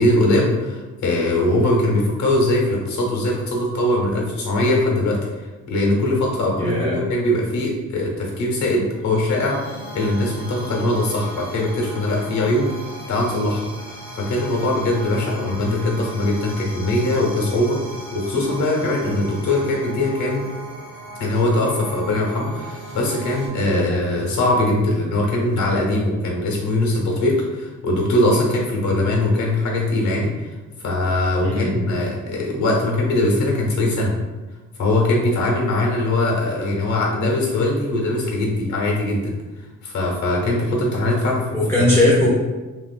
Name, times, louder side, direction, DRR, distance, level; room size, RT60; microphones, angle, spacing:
voice 1, 0.0-5.2 5.7-13.6 13.9-17.8 18.1-20.5 21.2-34.1 34.8-39.3 39.8-41.5 41.8-41.9, left 1 dB, 70° left, -2 dB, 0.9 m, -21 dB
voice 2, 6.6-7.0 23.6-23.8 31.4-31.7 41.5-42.3, left 1 dB, 10° left, -8 dB, 0.7 m, -19 dB
sound 1, 8.8-23.5, right 1 dB, 75° right, 1.1 m, -37 dB
2.9 x 2.5 x 2.3 m, 1.2 s
cardioid pair, 90°, 30 cm